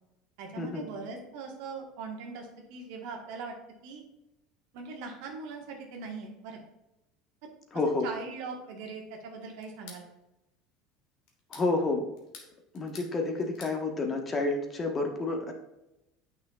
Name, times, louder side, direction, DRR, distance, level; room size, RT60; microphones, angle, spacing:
voice 1, 0.4-3.5 3.8-4.0 4.7-6.6 8.0-10.0, right 4 dB, 65° right, 1 dB, 1.4 m, -40 dB
voice 2, 7.7-8.1 11.5-12.0 12.7-15.5, left 3 dB, 30° left, 3 dB, 1.3 m, -29 dB
sound 1, 9.6-10.1 11.3-11.7 12.2-13.1 13.4-13.8, left 5 dB, 65° left, 1.5 m, -49 dB
9.0 x 5.7 x 2.4 m, 0.90 s
hypercardioid pair, 75°, 0 cm